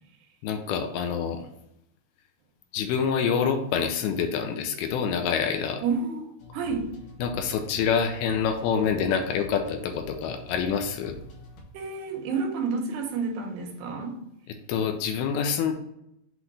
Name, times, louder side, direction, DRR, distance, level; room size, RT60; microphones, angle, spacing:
voice 1, 0.4-1.5 2.7-5.8 7.2-11.2 14.7-15.7, left 7 dB, 80° left, 5 dB, 2.4 m, -26 dB
voice 2, 5.8-6.9 11.7-14.1, right 4 dB, 90° right, 3 dB, 3.1 m, -30 dB
sound 1, 6.4-11.6, left 1 dB, 65° left, 1.9 m, -45 dB
7.8 x 3.0 x 4.0 m, 0.80 s
omnidirectional pair, 4.7 m